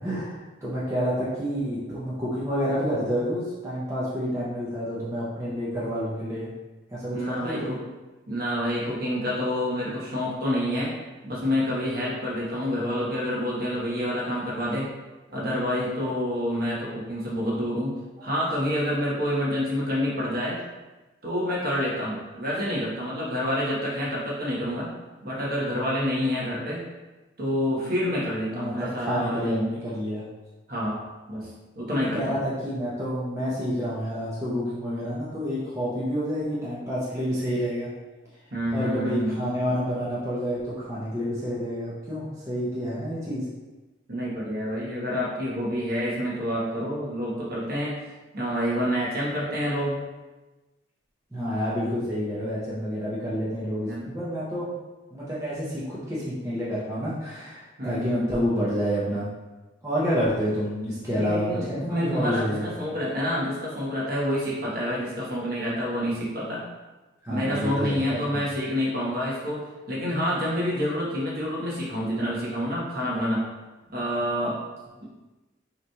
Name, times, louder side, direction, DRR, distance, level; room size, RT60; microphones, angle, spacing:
voice 1, 0.0-6.5 6.9-7.7 28.5-30.2 31.9-37.9 38.7-43.5 51.3-54.7 55.1-59.3 59.8-62.7 67.2-68.5, equal, 15° right, -9 dB, 0.7 m, -29 dB
voice 2, 7.1-7.8 8.3-10.9 11.2-14.9 15.3-17.9 18.2-20.6 21.2-24.9 25.2-26.8 27.4-29.7 30.7-31.0 31.3-32.4 38.5-39.4 44.1-48.0 48.3-50.0 53.9-54.1 57.8-58.3 61.1-66.6 67.3-73.5 73.9-74.6 75.0-75.1, equal, 50° right, -5 dB, 1.1 m, -28 dB
5.6 x 3.0 x 2.3 m, 1.2 s
head